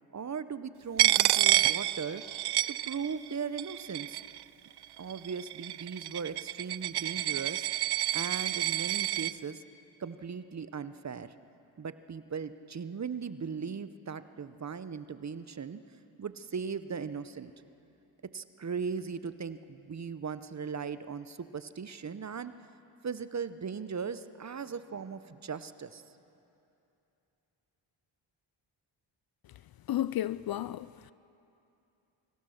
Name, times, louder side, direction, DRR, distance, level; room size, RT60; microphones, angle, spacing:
voice 1, 0.1-2.2 2.7-4.2 5.0-7.7 8.1-9.6 10.0-11.3 11.8-15.8 16.2-17.5 18.3-22.5 23.0-26.0, right 6 dB, 35° right, 0.8 m, -38 dB
Coin (dropping), 1.0-3.3 3.6-4.4 5.1-9.3, right 14 dB, 55° right, 0.5 m, -28 dB
voice 2, 29.9-31.1, left 12 dB, 50° left, 0.4 m, -32 dB
24.5 x 16.0 x 6.6 m
supercardioid pair, 60°, 50 cm